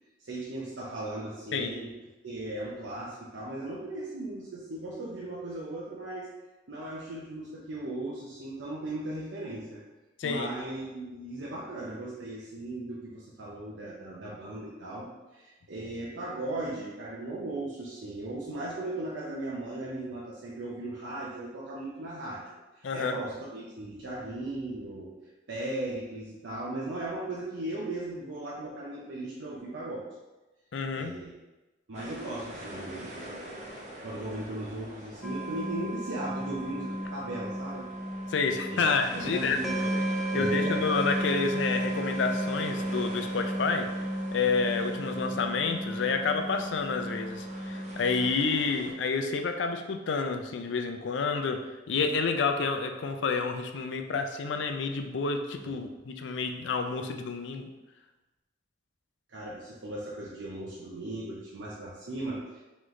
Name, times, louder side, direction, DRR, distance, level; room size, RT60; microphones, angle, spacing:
voice 1, 0.2-1.9 2.2-6.3 6.7-9.8 10.2-22.4 22.7-25.1 25.5-30.1 30.9-31.3 31.9-33.4 34.0-37.9 38.7-40.0 40.3-40.8 55.6-55.9 59.3-62.6, right 1 dB, 80° right, -6 dB, 0.7 m, -37 dB
voice 2, 10.2-10.5 22.8-23.2 30.7-31.2 38.3-39.6 40.3-43.9 44.3-57.7, left 4 dB, 70° left, 5 dB, 0.4 m, -29 dB
sound 1, 31.9-48.9, equal, 35° right, 0.7 m, -45 dB
sound 2, 35.2-48.3, equal, ahead, 0.4 m, -34 dB
3.8 x 3.1 x 3.1 m, 1.1 s
head